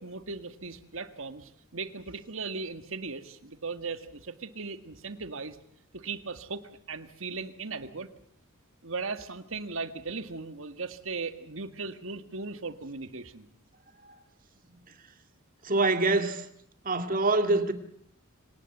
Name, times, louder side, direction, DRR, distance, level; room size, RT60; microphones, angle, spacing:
voice 1, 0.0-5.6 5.9-6.6 6.9-8.1 8.8-13.5, right 4 dB, 65° right, 1.8 m, -38 dB
voice 2, 15.6-16.5 16.9-17.7, right 2 dB, 40° right, 2.0 m, -25 dB
25.5 x 19.0 x 7.8 m
head